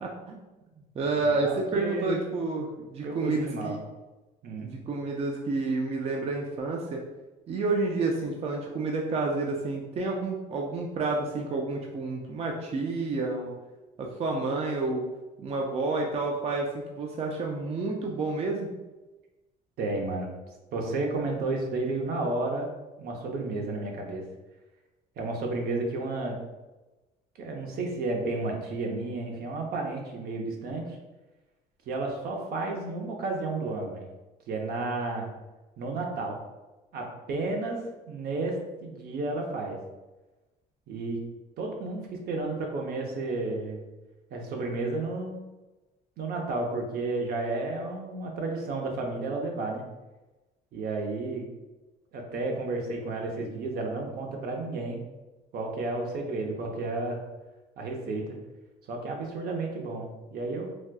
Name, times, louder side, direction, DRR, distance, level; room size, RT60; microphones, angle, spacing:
voice 1, 0.0-0.4 1.0-3.8 4.6-7.0 7.5-13.5 14.0-15.1 15.4-18.7, right 3 dB, 35° right, 0 dB, 0.4 m, -29 dB
voice 2, 1.0-2.2 3.0-3.8 4.4-4.8 19.8-20.3 20.7-22.7 23.0-24.2 25.2-26.4 27.4-30.9 31.9-34.1 34.5-35.3 35.8-36.4 36.9-37.8 38.1-38.6 38.8-39.8 40.9-41.2 41.6-43.8 44.3-45.3 46.2-49.8 50.7-51.5 52.1-55.0 55.5-57.2 57.8-58.3 58.9-60.7, right 3 dB, 65° right, 1 dB, 0.7 m, -32 dB
4.2 x 2.2 x 2.3 m, 1.1 s
cardioid pair, 110°, 17 cm